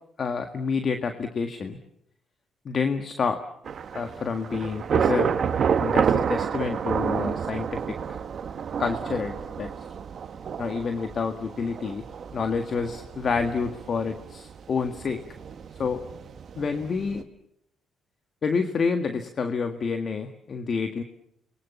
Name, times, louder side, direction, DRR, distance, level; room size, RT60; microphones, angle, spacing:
voice 1, 0.2-1.8 2.7-3.4 3.9-5.3 5.8-8.2 8.8-9.7 10.6-12.0 12.3-15.2 15.8-16.0 16.6-17.2 18.4-21.0, left 5 dB, 50° left, 7 dB, 1.8 m, -28 dB
Thunder / Rain, 3.6-17.2, right 7 dB, 55° right, 1.6 m, -29 dB
29.5 x 22.5 x 7.0 m, 0.73 s
cardioid pair, 90°, 0 cm